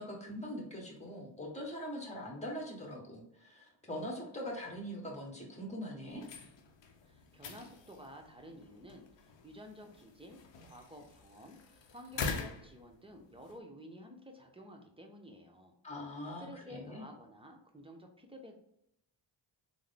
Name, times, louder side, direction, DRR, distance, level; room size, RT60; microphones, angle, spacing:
voice 1, 0.0-6.3 15.8-17.1, equal, 15° left, -1 dB, 1.3 m, -42 dB
sound 1, 6.1-13.6, left 4 dB, 60° left, 0.7 m, -45 dB
voice 2, 7.0-9.1 9.4-15.7 16.4-18.5, equal, 10° right, 2 dB, 0.8 m, -52 dB
3.5 x 2.1 x 3.3 m, 0.78 s
cardioid pair, 50°, 49 cm